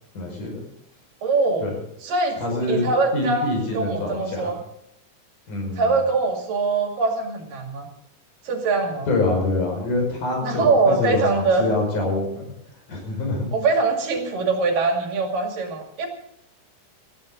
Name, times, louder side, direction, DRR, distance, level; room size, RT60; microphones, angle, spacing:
voice 1, 0.1-0.5 1.6-1.7 2.4-2.9 3.1-4.5 5.5-5.9 9.1-12.4 12.9-13.5, left 2 dB, 70° left, 1 dB, 6.9 m, -25 dB
voice 2, 1.2-1.7 2.0-2.4 2.7-4.6 5.8-7.9 8.4-9.1 10.4-11.7 13.5-16.1, right 3 dB, 90° right, 3 dB, 4.0 m, -22 dB
19.5 x 14.0 x 3.9 m, 0.81 s
omnidirectional pair, 3.8 m